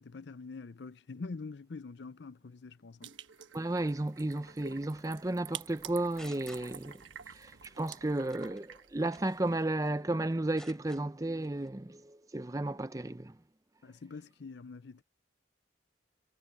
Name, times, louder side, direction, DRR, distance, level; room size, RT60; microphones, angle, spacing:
voice 1, 0.0-3.1 13.8-15.0, left 4 dB, 65° left, 0.5 m, -45 dB
sound 1, 3.0-9.6, right 9 dB, 90° right, 1.3 m, -49 dB
voice 2, 3.5-7.0 7.4-7.5 7.8-13.3, right 2 dB, 20° right, 0.6 m, -33 dB
sound 2, 5.8-7.2 7.5-7.8 8.3-8.6 9.1-10.0 10.3-11.0 11.4-11.7, left 1 dB, 5° left, 4.4 m, -54 dB
head